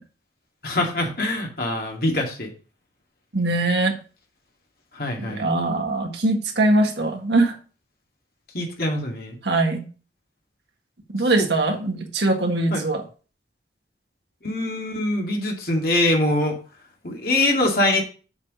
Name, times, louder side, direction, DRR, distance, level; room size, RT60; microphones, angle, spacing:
voice 1, 0.6-2.5 4.9-5.4 8.5-9.4 11.4-11.5 12.7-12.8 14.4-16.6 17.0-18.0, left 1 dB, 55° left, 1 dB, 2.2 m, -23 dB
voice 2, 3.3-4.0 5.2-7.6 9.4-9.9 11.1-13.0, right 2 dB, 75° right, 3 dB, 1.7 m, -22 dB
7.2 x 4.9 x 6.2 m, 0.36 s
head